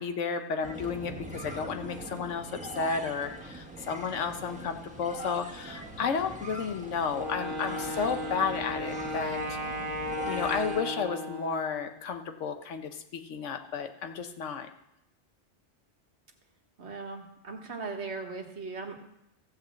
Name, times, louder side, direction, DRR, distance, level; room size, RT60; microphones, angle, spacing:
voice 1, 0.0-9.6 10.2-14.7, left 6 dB, 80° left, 7 dB, 1.2 m, -32 dB
sound 1, 0.6-10.8, right 1 dB, 5° right, 1.3 m, -42 dB
Wind instrument woodwind instrument, 7.1-12.0, left 1 dB, 45° right, 1.6 m, -35 dB
voice 2, 16.8-19.0, right 4 dB, 65° right, 3 dB, 1.6 m, -38 dB
14.5 x 5.1 x 7.4 m, 0.83 s
omnidirectional pair, 1.2 m